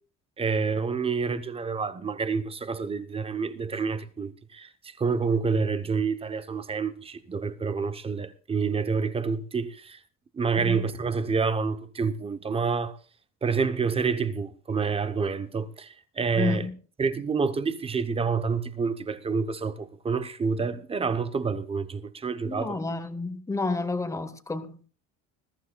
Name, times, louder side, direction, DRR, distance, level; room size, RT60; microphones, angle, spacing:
voice 1, 0.4-10.0 10.3-13.0 13.4-16.6 17.0-22.8, right 5 dB, 20° right, 0.7 m, -28 dB
voice 2, 10.6-10.9 16.4-16.7 22.4-24.8, left 3 dB, 10° left, 0.9 m, -30 dB
21.0 x 14.0 x 2.3 m
cardioid pair, 170°, 30 cm